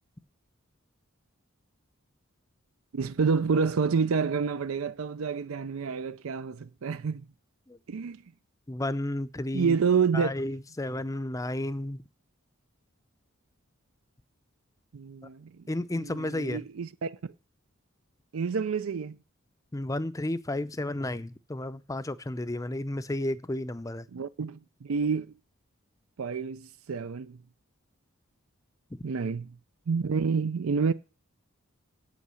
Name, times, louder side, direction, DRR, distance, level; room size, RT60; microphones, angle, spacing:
voice 1, 2.9-7.2 7.9-8.2 9.5-10.3 14.9-15.5 16.0-17.2 18.3-19.2 24.1-25.3 26.2-27.4 29.0-29.5 29.9-30.9, right 5 dB, 75° right, 0.5 m, -28 dB
voice 2, 8.7-9.8 10.1-12.0 15.7-16.6 19.7-24.1, left 1 dB, 15° left, 0.5 m, -32 dB
8.6 x 8.4 x 6.3 m
head